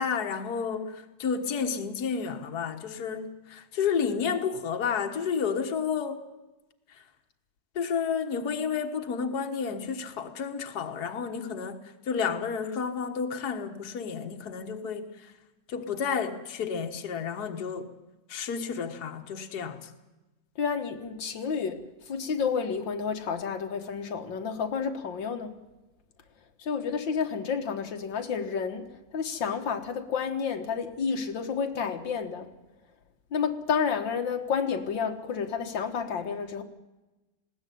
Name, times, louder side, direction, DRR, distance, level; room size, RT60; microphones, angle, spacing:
voice 1, 0.0-6.2 7.8-11.8 12.1-15.1 15.7-17.9 18.3-19.9, left 6 dB, 60° left, 5 dB, 1.9 m, -31 dB
voice 2, 20.6-21.8 22.1-25.6 26.6-28.9 29.1-32.5 33.3-36.6, left 6 dB, 90° left, 4 dB, 2.2 m, -30 dB
20.0 x 16.5 x 9.3 m, 1.1 s
omnidirectional pair, 2.0 m